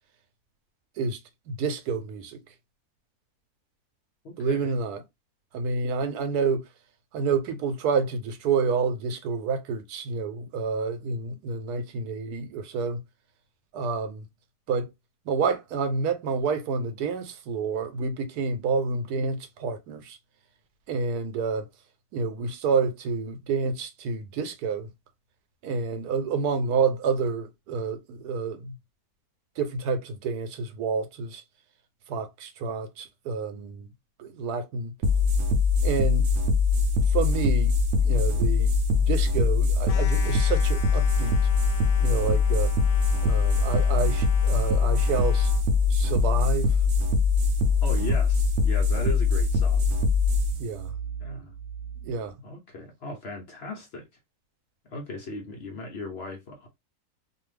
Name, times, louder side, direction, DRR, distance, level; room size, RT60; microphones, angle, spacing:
voice 1, 1.5-2.4 4.4-5.0 5.5-6.6 7.1-13.0 13.7-14.2 14.7-14.9 15.3-20.2 20.9-21.7 22.1-24.9 25.6-28.7 29.6-31.4 32.1-33.9 34.2-34.9 35.8-36.2 37.1-37.7 38.0-38.8 39.1-41.4 42.0-42.7 43.2-45.5 45.9-46.7 50.6-50.9 52.0-52.3, right 5 dB, 85° right, 1.2 m, -28 dB
voice 2, 4.2-4.8 47.8-49.9 51.2-51.5 52.4-54.1 54.8-56.7, left 2 dB, 50° left, 0.9 m, -37 dB
sound 1, 35.0-52.1, left 4 dB, 65° right, 0.9 m, -23 dB
sound 2, 39.9-45.7, left 8 dB, 75° left, 1.0 m, -42 dB
2.6 x 2.3 x 3.2 m
omnidirectional pair, 1.6 m